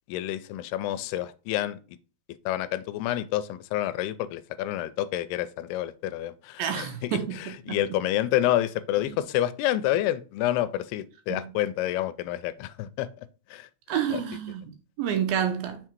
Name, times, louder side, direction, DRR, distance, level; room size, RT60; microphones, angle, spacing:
voice 1, 0.1-2.0 2.5-13.7 14.1-14.2, left 13 dB, 85° left, 2.5 m, -29 dB
voice 2, 6.6-7.8 11.3-11.5 13.9-15.8, right 9 dB, 75° right, 2.6 m, -29 dB
6.2 x 3.7 x 4.5 m
omnidirectional pair, 4.6 m